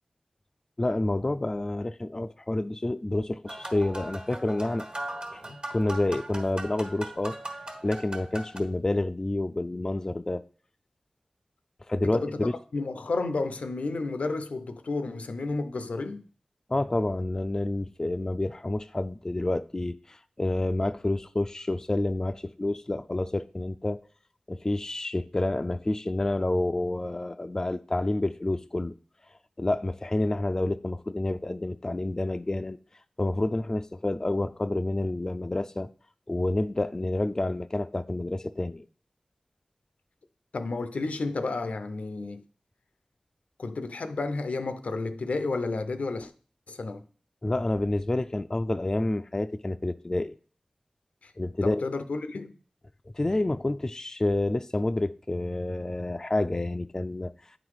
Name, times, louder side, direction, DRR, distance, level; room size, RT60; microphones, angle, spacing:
voice 1, 0.8-4.9 5.3-7.4 7.8-10.4 11.9-12.5 16.7-24.0 24.5-28.9 29.6-32.8 33.2-35.9 36.3-38.9 47.4-50.4 51.4-51.8 53.1-57.3, left 2 dB, 25° left, 0.3 m, -29 dB
sound 1, 3.5-8.6, right 1 dB, 50° right, 1.4 m, -39 dB
voice 2, 12.0-16.2 40.5-42.4 43.6-46.3 46.7-47.0 51.2-51.3 51.6-52.5, left 3 dB, 90° left, 0.6 m, -31 dB
9.2 x 3.9 x 4.7 m
wide cardioid pair, 75°, 2 cm